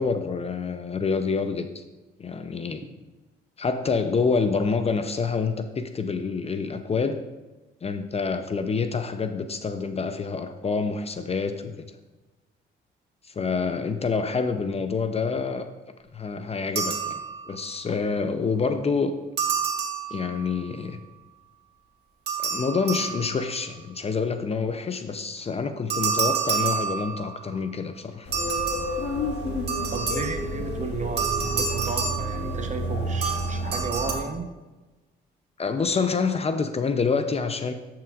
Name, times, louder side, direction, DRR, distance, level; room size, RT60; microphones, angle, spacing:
voice 1, 0.0-1.8 2.2-2.8 3.6-7.2 7.8-11.9 13.4-15.7 16.1-17.2 17.5-19.1 20.1-21.0 22.4-28.3 35.6-37.7, left 5 dB, 30° left, 9 dB, 0.5 m, -27 dB
sound 1, 16.8-17.7 19.4-20.7 22.3-23.6 25.9-27.5 28.3-30.6 31.2-32.9 33.2-34.1, right 6 dB, 55° right, 1.4 m, -29 dB
sound 2, 28.3-34.2, equal, 60° left, 1.7 m, -30 dB
voice 2, 29.9-34.5, right 4 dB, 40° right, 6 dB, 0.9 m, -33 dB
12.0 x 5.9 x 2.4 m, 1.2 s
cardioid pair, 90°, 20 cm